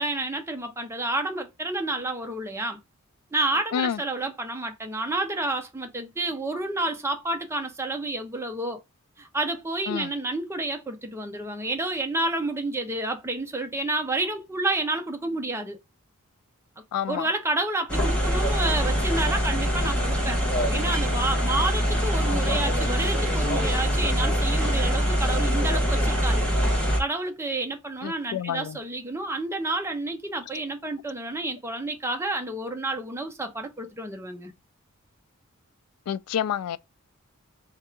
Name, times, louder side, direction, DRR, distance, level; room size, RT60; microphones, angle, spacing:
voice 1, 0.0-2.8 3.3-8.8 9.2-15.8 17.1-20.5 20.7-26.5 27.0-34.5, right 2 dB, 10° right, 0.6 m, -30 dB
voice 2, 16.9-17.3 28.0-28.8 36.1-36.8, left 8 dB, 90° left, 0.3 m, -28 dB
sound 1, 17.9-27.0, equal, 5° left, 1.1 m, -24 dB
3.5 x 2.5 x 4.3 m
head